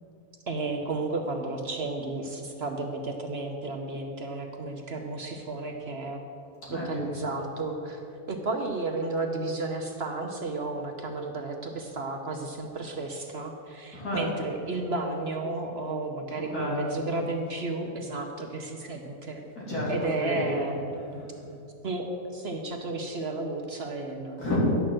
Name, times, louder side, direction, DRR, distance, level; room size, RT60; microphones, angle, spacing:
voice 1, 0.5-6.2 6.7-8.0 8.3-19.4 19.9-20.8 21.8-24.5, right 2 dB, 50° right, 3 dB, 0.9 m, -33 dB
voice 2, 6.6-7.2 13.9-14.3 16.3-17.0 19.5-21.5 24.4-24.6, left 1 dB, 80° left, -6 dB, 3.7 m, -32 dB
10.5 x 6.4 x 7.6 m, 2.8 s
omnidirectional pair, 1.6 m